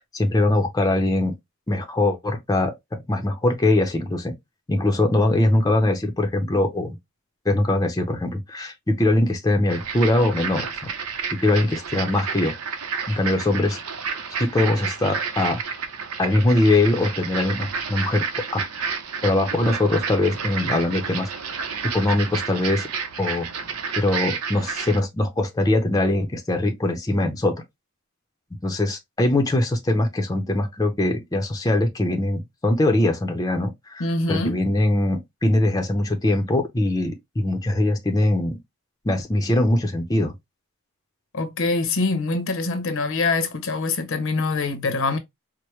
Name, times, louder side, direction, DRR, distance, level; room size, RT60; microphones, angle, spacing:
voice 1, 0.0-1.3 1.7-2.7 3.1-4.3 4.7-7.0 7.5-10.7 11.4-12.5 13.1-13.8 14.4-15.6 16.2-18.2 18.5-18.6 19.2-21.3 21.8-22.9 23.2-23.5 24.0-27.5 28.6-34.0 34.3-38.6 39.0-40.3, left 1 dB, 15° left, 0.6 m, -22 dB
sound 1, 9.7-25.0, right 6 dB, 90° right, 0.8 m, -30 dB
voice 2, 34.0-34.6 41.3-45.2, left 3 dB, 60° left, 0.8 m, -24 dB
4.5 x 2.1 x 3.1 m
head